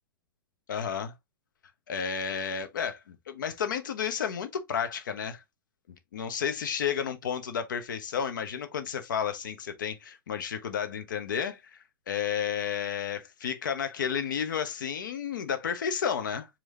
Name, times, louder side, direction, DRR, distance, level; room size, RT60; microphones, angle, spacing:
voice 1, 0.7-1.1 1.9-5.4 6.1-16.5, left 7 dB, 60° left, 1.0 m, -32 dB
4.7 x 2.9 x 3.8 m
figure-of-eight pair, 100°, 12 cm